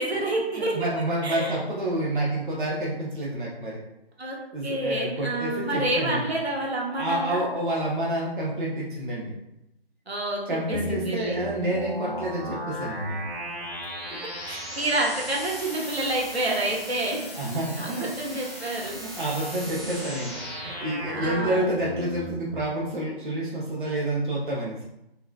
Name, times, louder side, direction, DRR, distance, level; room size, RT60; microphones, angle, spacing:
voice 1, 0.0-0.9 1.2-1.6 4.2-7.5 10.1-11.4 12.1-12.2 14.5-17.3 17.8-19.0 21.1-21.6, right 1 dB, 80° right, -2 dB, 1.0 m, -28 dB
voice 2, 0.7-3.8 4.5-6.3 7.0-9.4 10.5-13.2 17.4-18.4 18.9-24.8, right 1 dB, 55° right, -4 dB, 0.7 m, -28 dB
sound 1, 10.7-22.6, equal, ahead, 0.3 m, -36 dB
3.6 x 2.6 x 2.2 m, 0.87 s
figure-of-eight pair, 150°, 31 cm